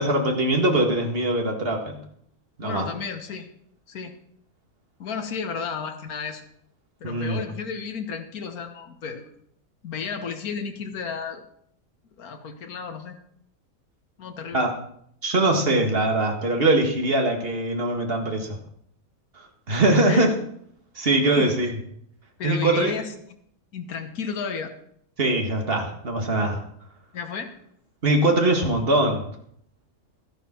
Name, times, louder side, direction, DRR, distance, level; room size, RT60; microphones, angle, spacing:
voice 1, 0.0-2.0 2.6-2.8 7.0-7.4 14.5-14.7 15.2-18.6 19.7-20.3 21.0-21.7 22.4-22.9 25.2-26.6 28.0-29.2, right 2 dB, 40° right, 2 dB, 2.0 m, -22 dB
voice 2, 2.6-3.5 3.9-4.1 5.0-6.4 7.0-9.3 9.8-11.4 12.2-13.2 14.2-14.7 20.1-20.3 21.2-21.6 22.4-23.1 23.7-24.7 27.1-27.5, left 5 dB, 85° left, 6 dB, 1.6 m, -32 dB
12.5 x 10.5 x 4.4 m, 0.67 s
omnidirectional pair, 1.5 m